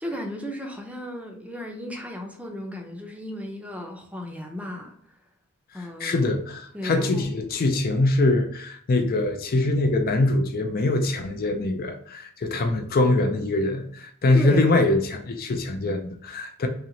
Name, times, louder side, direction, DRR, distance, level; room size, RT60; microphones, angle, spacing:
voice 1, 0.0-4.9 5.7-6.3 6.7-7.3 14.3-14.9, equal, 5° right, 0.6 m, -34 dB
voice 2, 5.8-16.7, left 2 dB, 45° left, 0.4 m, -23 dB
3.0 x 2.9 x 3.9 m
head